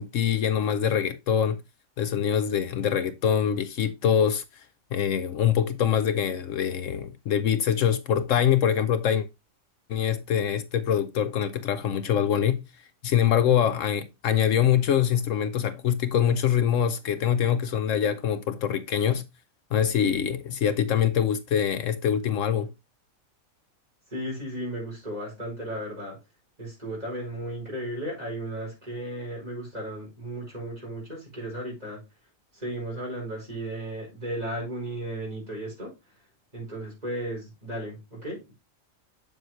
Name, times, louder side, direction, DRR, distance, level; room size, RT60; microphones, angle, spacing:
voice 1, 0.0-1.6 2.0-4.4 4.9-9.3 9.9-12.6 13.0-19.2 19.7-22.7, left 9 dB, 70° left, 1.0 m, -24 dB
voice 2, 24.1-26.2 26.6-32.0 32.5-35.9 36.5-38.5, right 1 dB, 30° right, 4.8 m, -35 dB
7.7 x 7.1 x 3.0 m
omnidirectional pair, 1.4 m